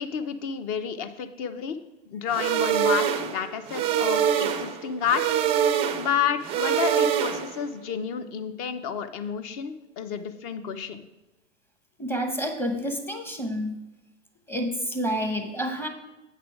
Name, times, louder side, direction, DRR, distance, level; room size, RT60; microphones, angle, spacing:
voice 1, 0.0-1.8 2.1-5.2 5.9-11.0, left 7 dB, 35° left, 11 dB, 0.7 m, -30 dB
sound 1, 2.3-7.7, right 9 dB, 15° right, 0.4 m, -25 dB
voice 2, 12.0-13.8 14.5-15.9, equal, 5° left, 4 dB, 0.9 m, -29 dB
8.3 x 5.9 x 4.8 m, 1.0 s
hypercardioid pair, 115°, 38 cm